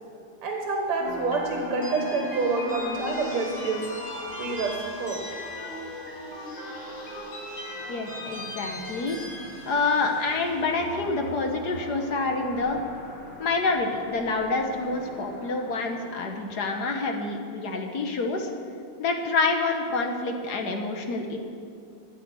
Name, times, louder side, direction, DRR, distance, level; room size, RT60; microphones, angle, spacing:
voice 1, 0.4-3.9 4.4-5.2, right 4 dB, 80° right, 2 dB, 2.2 m, -28 dB
sound 1, 1.0-17.2, left 1 dB, 35° left, 2.4 m, -38 dB
voice 2, 7.9-9.2 9.6-12.8 13.4-18.5 19.0-21.4, left 3 dB, 55° left, 3 dB, 1.4 m, -27 dB
14.0 x 5.9 x 9.2 m, 2.3 s
omnidirectional pair, 2.4 m